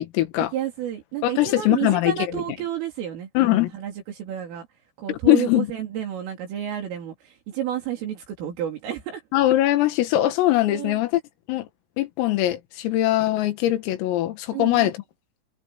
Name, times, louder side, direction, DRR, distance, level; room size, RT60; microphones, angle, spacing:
voice 1, 0.0-0.5 1.2-2.1 3.4-3.7 5.1-5.7 9.3-11.2 11.5-11.7 12.0-15.0, left 15 dB, 80° left, 4.6 m, -21 dB
voice 2, 0.5-4.7 5.0-9.2 10.7-11.0 14.5-14.9, right 10 dB, 70° right, 6.2 m, -31 dB
omnidirectional pair, 6.0 m